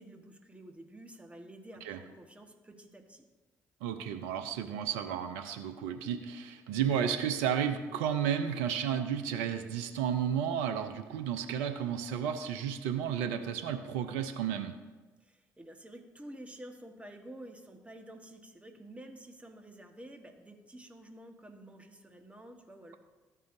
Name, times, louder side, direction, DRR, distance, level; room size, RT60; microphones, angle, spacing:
voice 1, 0.0-3.3 15.2-23.0, right 1 dB, 15° right, 4 dB, 1.3 m, -50 dB
voice 2, 3.8-14.7, right 8 dB, 85° right, 8 dB, 0.5 m, -32 dB
14.0 x 5.6 x 2.6 m, 1.2 s
hypercardioid pair, 50°, 8 cm